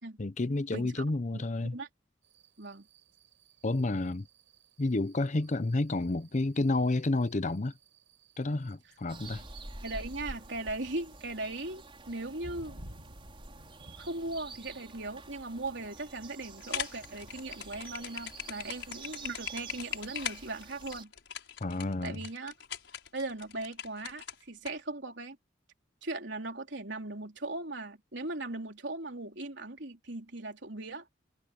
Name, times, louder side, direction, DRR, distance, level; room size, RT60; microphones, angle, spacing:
voice 1, 0.2-1.8 3.6-4.3 4.8-7.7 8.4-9.4 21.6-22.2, left 2 dB, 40° left, 0.7 m, -30 dB
voice 2, 0.7-1.0 1.3-1.4 1.7-1.9 2.6-2.9 9.8-12.8 14.0-21.1 22.0-22.5 23.1-25.4 26.0-31.1, right 2 dB, 70° right, 4.1 m, -38 dB
sound 1, 2.2-18.3, right 1 dB, 85° right, 7.0 m, -57 dB
sound 2, 9.1-21.0, right 3 dB, 30° right, 4.8 m, -48 dB
sound 3, 16.6-24.7, left 9 dB, 75° left, 6.0 m, -40 dB
head